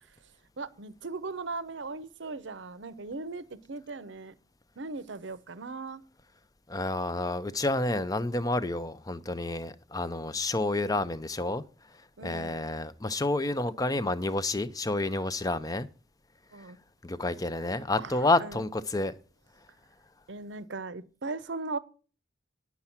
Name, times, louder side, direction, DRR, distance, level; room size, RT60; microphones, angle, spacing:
voice 1, 0.6-4.3 4.8-6.0 12.2-12.7 16.5-16.8 18.0-18.6 20.3-21.8, right 3 dB, 65° right, 0.7 m, -38 dB
voice 2, 6.7-15.9 17.0-19.1, left 2 dB, 20° left, 0.6 m, -29 dB
9.8 x 7.1 x 5.8 m
head